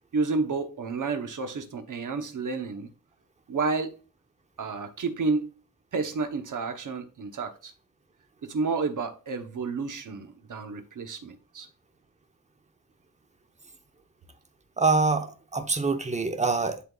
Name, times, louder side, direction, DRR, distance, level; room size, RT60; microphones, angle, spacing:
voice 1, 0.1-2.9 3.5-3.9 4.6-5.5 5.9-7.7 8.4-11.7, right 4 dB, 60° right, 1.0 m, -30 dB
voice 2, 14.8-16.8, right 3 dB, 20° right, 0.8 m, -25 dB
11.5 x 3.8 x 2.4 m
wide cardioid pair, 135°, 35 cm